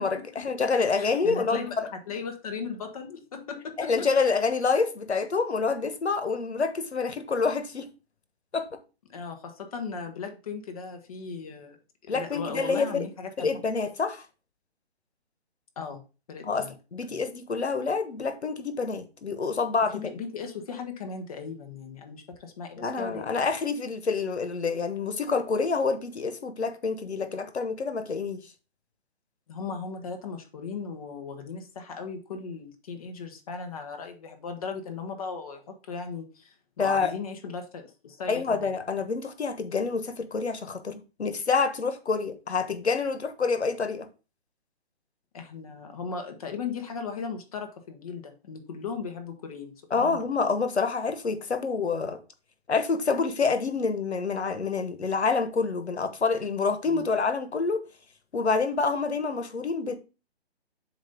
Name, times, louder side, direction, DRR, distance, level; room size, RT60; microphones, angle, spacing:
voice 1, 0.0-1.9 3.8-7.9 8.5-8.7 12.1-13.0 13.4-14.2 16.4-20.0 22.8-28.4 36.8-37.1 38.3-44.1 49.9-52.2 52.7-57.8 58.3-60.0, left 4 dB, 85° left, 1.3 m, -27 dB
voice 2, 1.0-4.1 9.1-11.8 12.0-13.6 15.8-16.0 16.3-16.7 19.9-23.3 29.5-38.7 45.3-50.2 56.9-57.2, left 5 dB, 35° left, 1.2 m, -37 dB
7.4 x 2.8 x 5.2 m
hypercardioid pair, 155°, 32 cm